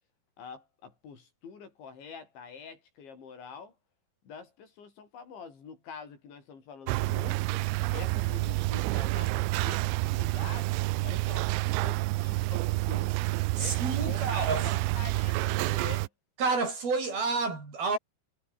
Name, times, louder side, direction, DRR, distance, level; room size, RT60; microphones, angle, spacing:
voice 1, 0.4-3.7 4.2-7.6 7.9-13.2 13.6-16.1, left 6 dB, 90° left, 8.2 m, -46 dB
sound 1, 6.9-16.1, right 22 dB, 90° right, 2.9 m, -29 dB
voice 2, 13.6-14.8 16.4-18.0, right 4 dB, 55° right, 9.1 m, -29 dB
omnidirectional pair, 5.1 m